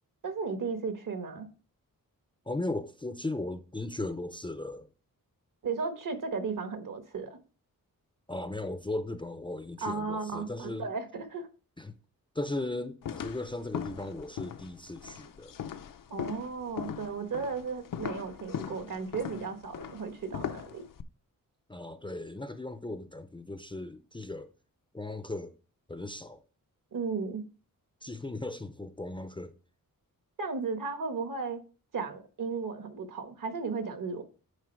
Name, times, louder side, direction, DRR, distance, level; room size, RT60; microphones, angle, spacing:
voice 1, 0.2-1.5 5.6-7.4 9.8-11.5 16.1-20.8 26.9-27.4 30.4-31.6 31.9-34.2, right 4 dB, 65° right, 1.4 m, -35 dB
voice 2, 2.5-4.9 8.3-10.9 11.8-11.9 12.3-15.5 21.7-24.5 24.9-25.5 25.9-26.4 28.0-29.5, left 2 dB, 15° left, 0.5 m, -37 dB
sound 1, 13.0-21.0, left 8 dB, 70° left, 0.6 m, -39 dB
9.6 x 4.3 x 4.5 m
wide cardioid pair, 150°, 35 cm